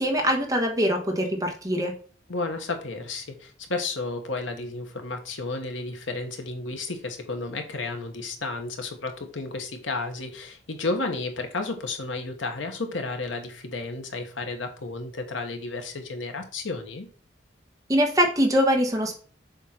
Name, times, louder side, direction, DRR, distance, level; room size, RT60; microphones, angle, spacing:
voice 1, 0.0-1.9 17.9-19.2, equal, 20° right, 3 dB, 1.2 m, -23 dB
voice 2, 2.3-17.1, left 3 dB, 90° left, 5 dB, 1.2 m, -32 dB
7.1 x 2.7 x 5.7 m, 0.41 s
head